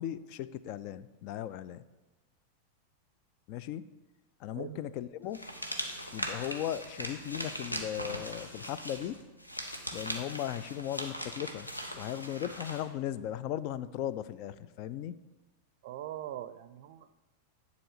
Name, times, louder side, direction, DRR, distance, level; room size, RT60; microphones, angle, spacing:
voice 1, 0.0-1.8 3.5-3.9 4.4-5.4 6.1-9.2 9.9-11.7 11.9-15.2, left 11 dB, 45° left, 15 dB, 0.3 m, -37 dB
sound 1, 5.3-12.8, equal, 85° left, 1.0 m, -40 dB
voice 2, 15.8-17.1, right 12 dB, 50° right, 14 dB, 0.4 m, -41 dB
10.0 x 4.1 x 6.5 m, 1.2 s
figure-of-eight pair, 90°, 0 cm